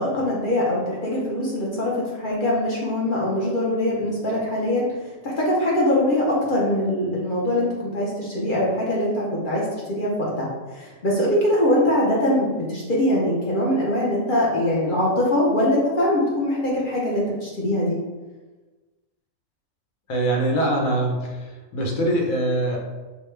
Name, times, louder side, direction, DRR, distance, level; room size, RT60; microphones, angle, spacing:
voice 1, 0.0-1.9 2.2-4.9 5.2-9.6 9.9-10.1 10.4-10.5 10.7-18.0, left 1 dB, 45° left, -5 dB, 0.8 m, -22 dB
voice 2, 20.1-21.5 21.7-22.8, right 1 dB, 75° left, 0 dB, 1.2 m, -23 dB
5.1 x 2.3 x 3.2 m, 1.2 s
omnidirectional pair, 1.4 m